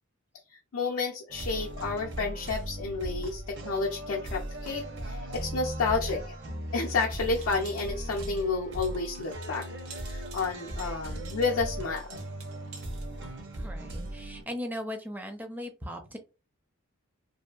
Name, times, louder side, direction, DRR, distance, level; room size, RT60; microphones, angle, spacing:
voice 1, 0.7-6.2 6.7-9.7 10.0-12.2, left 4 dB, 75° left, 1 dB, 0.5 m, -31 dB
sound 1, 1.3-14.4, right 1 dB, 55° right, 0.6 m, -38 dB
sound 2, 6.9-13.1, right 5 dB, 85° right, 0.8 m, -51 dB
voice 2, 13.6-16.2, equal, 10° right, 5 dB, 0.4 m, -38 dB
2.6 x 2.4 x 2.3 m, 0.31 s
head